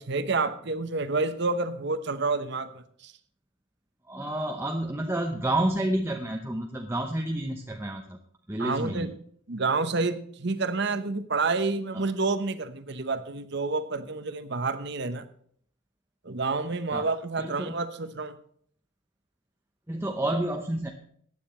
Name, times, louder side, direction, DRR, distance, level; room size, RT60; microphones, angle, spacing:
voice 1, 0.0-3.1 8.6-9.1 9.5-15.2 16.2-18.4, right 3 dB, 55° right, 11 dB, 1.0 m, -29 dB
voice 2, 4.1-8.2 8.5-9.2 11.9-12.1 16.9-17.1 17.4-17.9 19.9-20.9, right 1 dB, 10° right, 2 dB, 0.8 m, -30 dB
15.0 x 9.6 x 4.4 m, 0.62 s
head